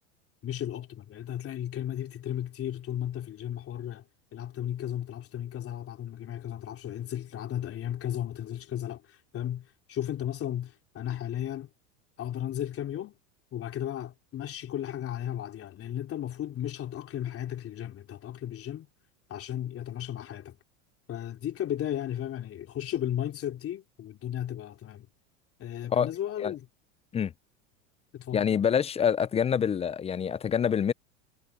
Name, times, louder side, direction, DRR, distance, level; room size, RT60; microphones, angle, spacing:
voice 1, 0.4-4.1 4.3-11.7 12.2-13.1 13.5-18.9 19.3-20.6 21.1-25.1 25.6-26.7 28.1-28.5, left 11 dB, 35° left, 3.2 m, -35 dB
voice 2, 28.3-30.9, left 7 dB, 15° left, 0.5 m, -26 dB
hypercardioid pair, 105°, 39 cm